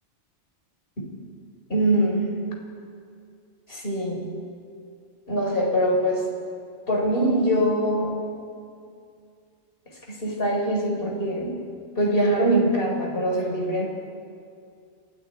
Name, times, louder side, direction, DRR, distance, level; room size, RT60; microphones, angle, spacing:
voice 1, 1.7-2.3 3.7-4.3 5.3-6.3 6.9-8.2 10.1-11.6 12.0-13.9, right 1 dB, 50° left, -1 dB, 4.9 m, -23 dB
30.0 x 26.5 x 4.7 m, 2.4 s
omnidirectional pair, 1.2 m